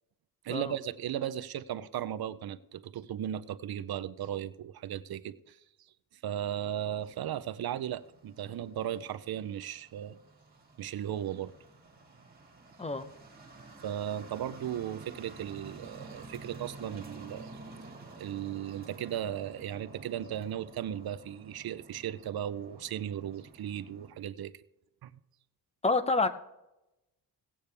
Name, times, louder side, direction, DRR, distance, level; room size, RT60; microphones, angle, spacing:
voice 1, 0.4-5.6 6.2-10.2 10.8-11.5 13.8-17.5 18.2-24.5 25.0-25.1, right 10 dB, 65° right, 14 dB, 0.6 m, -36 dB
sound 1, 6.6-24.1, right 3 dB, 25° right, 2.0 m, -51 dB
voice 2, 12.8-13.1 25.8-26.3, left 3 dB, 15° left, 11 dB, 0.7 m, -28 dB
17.5 x 8.6 x 3.4 m, 0.92 s
wide cardioid pair, 140°, 40 cm